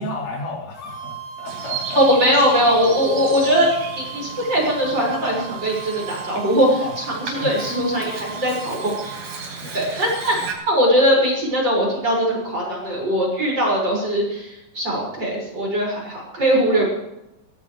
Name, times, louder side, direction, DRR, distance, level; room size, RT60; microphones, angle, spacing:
voice 1, 0.0-2.0 6.8-7.0 7.3-7.9 9.6-9.8 16.7-16.9, left 2 dB, 75° left, -2 dB, 6.2 m, -33 dB
sound 1, 0.7-9.4, right 9 dB, 25° left, 3.4 m, -37 dB
Bird vocalization bird call bird song, 1.5-10.5, right 5 dB, 55° right, 5.5 m, -35 dB
voice 2, 1.9-3.7 4.0-6.8 7.3-9.0 9.7-16.8, equal, 25° right, -3 dB, 6.6 m, -20 dB
18.5 x 18.0 x 3.4 m, 0.89 s
omnidirectional pair, 5.1 m